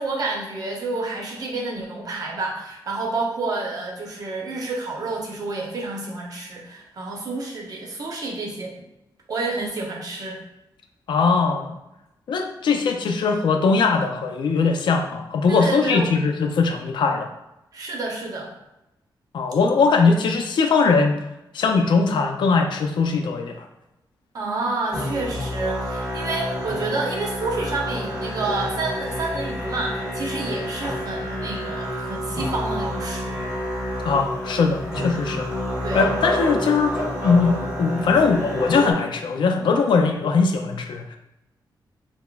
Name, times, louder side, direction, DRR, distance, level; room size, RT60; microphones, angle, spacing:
voice 1, 0.0-8.7 9.3-10.4 15.5-16.1 17.7-18.5 24.3-33.6 35.8-36.1, right 3 dB, 50° right, -1 dB, 0.7 m, -29 dB
voice 2, 11.1-11.8 12.3-17.3 19.3-21.2 21.5-23.7 34.0-35.5 35.9-37.0 37.2-41.2, left 4 dB, 75° left, 4 dB, 0.4 m, -20 dB
Musical instrument, 24.9-38.9, equal, 5° right, 1.4 m, -28 dB
5.8 x 2.1 x 2.2 m, 0.92 s
wide cardioid pair, 175°, 8 cm